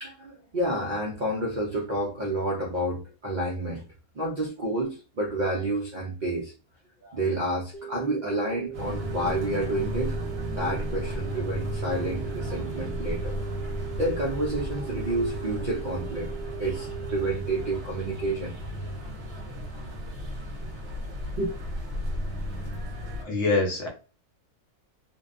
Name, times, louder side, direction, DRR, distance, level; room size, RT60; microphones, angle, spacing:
voice 1, 0.0-3.8 4.1-6.5 7.0-10.1 10.6-13.3 14.0-18.5 21.4-21.5, right 1 dB, 70° right, -2 dB, 0.4 m, -29 dB
sound 1, 7.7-17.7, right 10 dB, 85° left, 0.5 m, -39 dB
sound 2, 8.7-23.2, equal, 50° right, 0.9 m, -34 dB
voice 2, 23.2-23.9, left 3 dB, 55° left, 1 dB, 0.9 m, -24 dB
2.6 x 2.2 x 2.4 m, 0.35 s
omnidirectional pair, 1.6 m